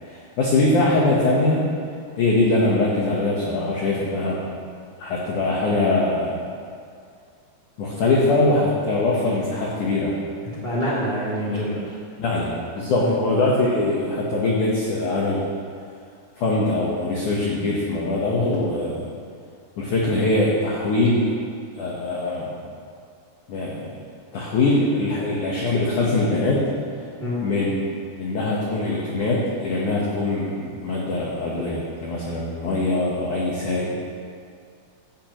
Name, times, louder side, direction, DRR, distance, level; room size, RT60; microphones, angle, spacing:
voice 1, 0.1-1.7 2.2-4.4 5.0-6.4 7.8-10.2 11.5-11.6 12.2-15.5 16.4-19.1 19.8-21.3 21.8-22.6 23.5-23.9 24.3-26.6 27.4-27.8 28.2-33.9, left 2 dB, 75° left, -4 dB, 1.8 m, -22 dB
voice 2, 10.5-11.9 13.0-13.1 27.2-27.4, equal, 20° right, -7 dB, 1.4 m, -26 dB
16.0 x 10.5 x 3.1 m, 2.3 s
omnidirectional pair, 5.5 m